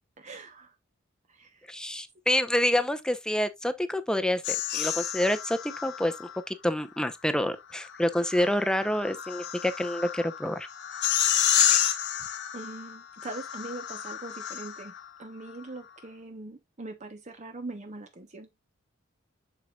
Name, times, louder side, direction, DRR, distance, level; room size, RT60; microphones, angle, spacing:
voice 1, 0.2-0.8 1.3-1.7 12.5-14.9 15.2-18.5, right 2 dB, 35° right, 0.9 m, -42 dB
voice 2, 1.7-10.7 11.7-11.8, left 1 dB, 5° left, 0.7 m, -28 dB
sound 1, 4.4-6.4 7.8-15.0, left 11 dB, 60° left, 1.0 m, -30 dB
7.4 x 6.6 x 2.3 m
head